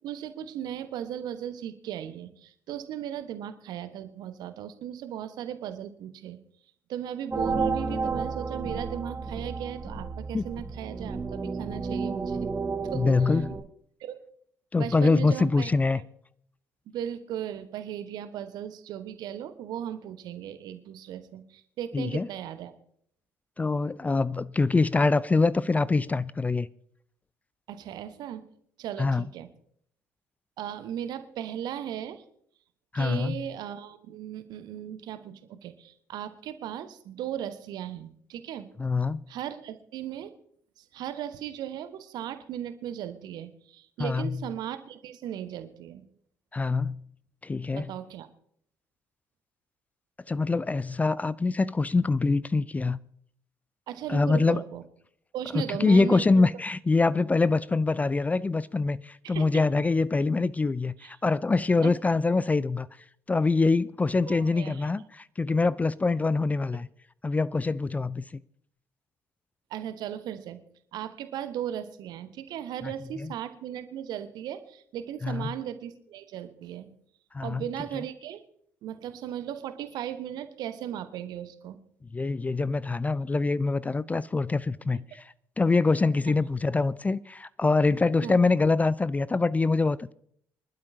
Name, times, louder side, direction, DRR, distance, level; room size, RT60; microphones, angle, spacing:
voice 1, 0.0-6.4 6.9-12.5 12.8-13.4 14.0-14.2 14.8-16.0 16.9-22.7 27.7-28.5 28.8-29.5 30.6-32.2 32.9-38.7 39.3-40.3 40.8-46.0 47.7-48.3 53.9-54.8 55.3-56.5 59.2-59.6 61.0-61.1 61.8-61.9 64.3-64.9 69.7-70.6 70.9-76.9 77.4-78.4 78.8-81.8 88.2-88.4, right 10 dB, 55° right, 1.2 m, -37 dB
sound 1, 7.3-13.6, right 4 dB, 25° right, 1.4 m, -32 dB
voice 2, 12.9-13.5 14.7-16.0 21.9-22.3 23.6-26.7 29.0-29.2 32.9-33.4 38.8-39.2 44.0-44.4 46.5-47.0 47.4-47.9 50.3-53.0 54.1-54.6 55.7-62.9 63.3-66.9 67.2-68.2 73.2-73.3 75.2-75.4 77.3-77.6 82.1-90.1, left 3 dB, 20° left, 0.4 m, -24 dB
25.0 x 12.0 x 2.8 m
figure-of-eight pair, 50°, 8 cm